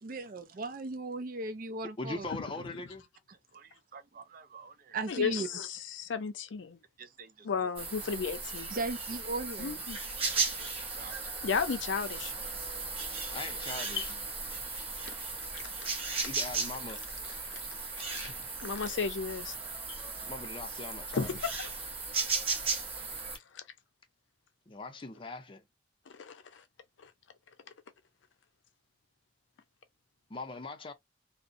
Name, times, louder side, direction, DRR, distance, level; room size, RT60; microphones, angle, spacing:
voice 1, 0.0-2.3 3.5-5.5 7.0-7.5 8.7-9.8 10.3-11.4 15.1-15.2, right 3 dB, 50° right, 0.5 m, -39 dB
voice 2, 2.0-3.0 13.1-14.1 16.2-17.0 20.3-21.3 24.7-25.6 30.3-30.9, left 3 dB, 30° left, 0.5 m, -41 dB
voice 3, 5.1-6.8 7.4-8.7 9.6-10.0 11.4-12.3 14.0-14.1 15.0-15.1 16.2-16.3 17.5-17.6 18.1-18.3 18.6-19.5 19.9-20.0 21.1-21.7 23.5-23.6 26.1-26.6 27.0-27.1, left 5 dB, 90° left, 0.5 m, -34 dB
sound 1, 7.8-23.4, right 4 dB, 30° right, 0.8 m, -36 dB
2.5 x 2.0 x 2.5 m
head